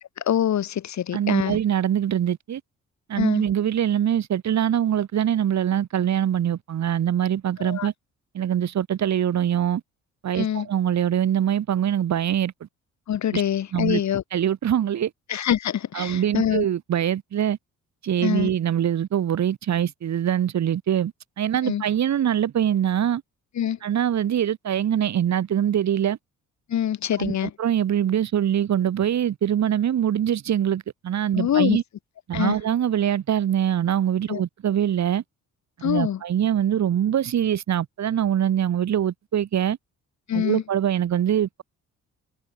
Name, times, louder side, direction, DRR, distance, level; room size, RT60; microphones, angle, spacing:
voice 1, 0.2-1.6 3.2-3.4 7.6-7.9 10.4-10.7 13.1-14.2 15.3-16.7 18.2-18.5 21.6-21.8 23.5-23.8 26.7-27.5 31.3-31.8 32.3-32.6 34.3-34.4 35.8-36.2 40.3-40.6, left 10 dB, 65° left, 6.7 m, -24 dB
voice 2, 1.1-2.6 3.1-7.9 8.3-9.8 10.2-12.5 13.3-13.4 13.7-14.0 14.3-15.1 15.9-17.6 18.0-23.2 23.8-26.2 27.2-31.8 32.3-35.2 35.8-39.8 40.3-41.6, right 10 dB, 65° right, 6.6 m, -23 dB
cardioid pair, 90°, 30 cm